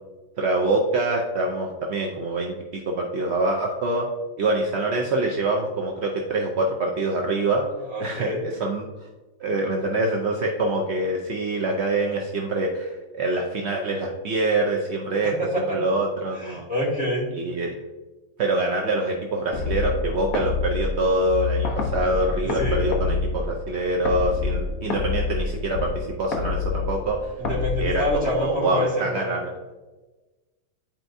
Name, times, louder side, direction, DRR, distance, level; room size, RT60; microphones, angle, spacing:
voice 1, 0.4-4.1 4.4-7.6 8.0-8.9 9.4-16.6 17.3-17.7 18.4-27.3 27.8-29.5, right 2 dB, 65° right, 1 dB, 0.6 m, -25 dB
voice 2, 7.8-8.5 15.2-15.8 16.3-17.3 22.4-22.9 27.4-29.2, left 1 dB, 5° right, -8 dB, 2.0 m, -27 dB
sound 1, 19.5-28.6, left 4 dB, 60° left, 1.2 m, -27 dB
10.5 x 4.4 x 2.6 m, 1.2 s
omnidirectional pair, 1.9 m